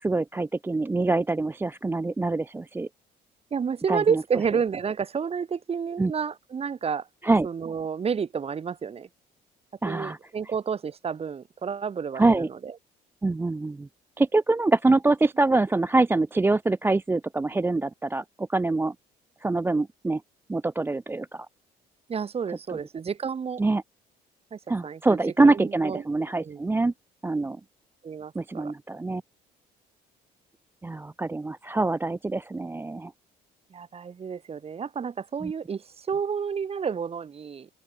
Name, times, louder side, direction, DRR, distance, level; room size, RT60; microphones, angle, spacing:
voice 1, 0.0-2.9 3.9-4.2 6.0-6.1 7.2-7.5 9.8-10.2 12.2-12.5 13.2-13.9 14.2-18.9 19.4-20.2 20.5-21.5 22.7-22.8 23.6-23.8 24.7-26.9 27.2-27.6 28.3-29.2 30.8-33.1 35.4-35.5, right 3 dB, 15° right, 0.6 m, -24 dB
voice 2, 3.5-7.1 7.4-9.1 9.9-12.7 22.1-23.6 24.5-25.2 25.4-26.0 26.4-26.6 28.0-28.7 33.7-37.7, right 6 dB, 35° right, 4.7 m, -30 dB
open air
cardioid pair, 110°, 17 cm